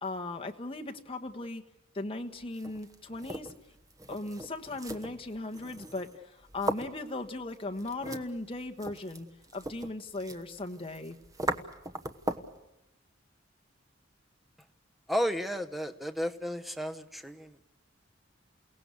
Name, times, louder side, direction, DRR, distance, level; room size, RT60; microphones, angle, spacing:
voice 1, 0.0-1.6 1.9-3.5 4.1-11.2, left 2 dB, 30° left, 4 dB, 1.5 m, -38 dB
sound 1, 2.4-12.6, right 1 dB, 20° right, 1.2 m, -39 dB
voice 2, 15.1-17.6, equal, ahead, 9 dB, 0.9 m, -33 dB
29.0 x 17.5 x 8.3 m, 0.93 s
head